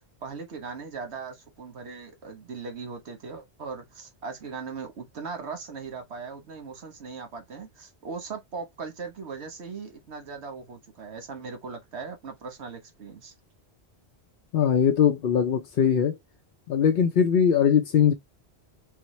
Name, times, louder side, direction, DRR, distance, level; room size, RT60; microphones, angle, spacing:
voice 1, 0.0-13.3, right 5 dB, 80° right, 1.4 m, -39 dB
voice 2, 14.5-16.2 16.7-18.1, left 8 dB, 65° left, 0.8 m, -21 dB
5.5 x 2.1 x 3.2 m
omnidirectional pair, 1.1 m